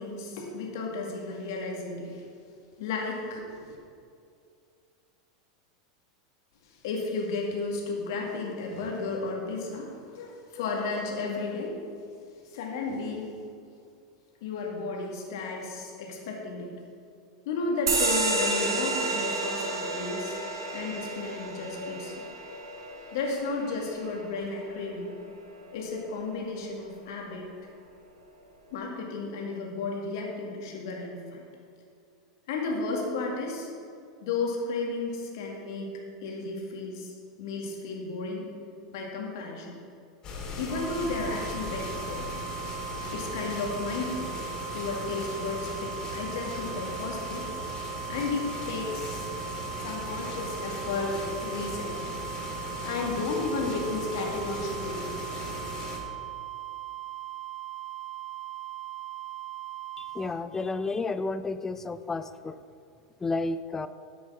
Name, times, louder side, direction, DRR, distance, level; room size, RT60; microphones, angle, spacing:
voice 1, 0.0-2.2 2.8-3.7 6.7-11.8 12.4-13.4 14.4-16.7 17.5-20.4 20.7-22.3 23.1-25.1 25.7-27.5 28.7-31.4 32.5-33.7 34.2-35.9 36.2-38.5 38.9-39.7 40.6-42.3 43.1-44.3 44.7-47.5 48.1-49.3 49.8-52.1 52.8-55.0, left 3 dB, 65° left, -1 dB, 2.1 m, -33 dB
sound 1, 17.9-24.9, right 2 dB, 80° right, 1.6 m, -31 dB
sound 2, 40.2-56.0, left 2 dB, 35° left, 2.7 m, -38 dB
sound 3, 40.7-60.2, right 14 dB, 55° right, 1.3 m, -39 dB
voice 2, 60.0-62.6 63.2-63.9, left 3 dB, 15° left, 12 dB, 0.5 m, -31 dB
9.9 x 6.2 x 5.8 m, 2.4 s
hypercardioid pair, 90°, 2 cm